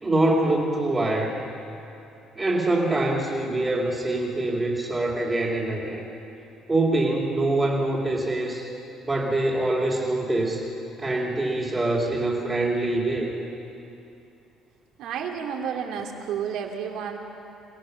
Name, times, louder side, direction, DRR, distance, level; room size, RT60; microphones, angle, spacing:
voice 1, 0.0-1.4 2.3-6.0 6.7-8.7 9.0-10.7 11.0-13.3, right 2 dB, 15° right, -5 dB, 2.8 m, -24 dB
voice 2, 15.0-17.2, right 7 dB, 70° right, 1 dB, 2.7 m, -31 dB
27.5 x 17.0 x 6.6 m, 2.8 s
cardioid pair, 145°, 0 cm